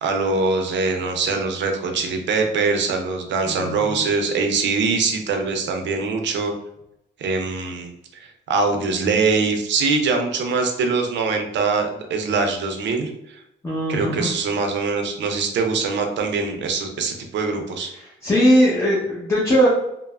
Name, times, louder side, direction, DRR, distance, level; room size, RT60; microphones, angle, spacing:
voice 1, 0.0-6.5 7.2-13.4 13.9-17.9, right 4 dB, 65° right, 4 dB, 0.5 m, -23 dB
voice 2, 3.5-4.0 13.6-14.3 17.9-19.7, equal, 15° left, -6 dB, 0.7 m, -20 dB
3.0 x 2.0 x 2.3 m, 0.84 s
cardioid pair, 90°, 20 cm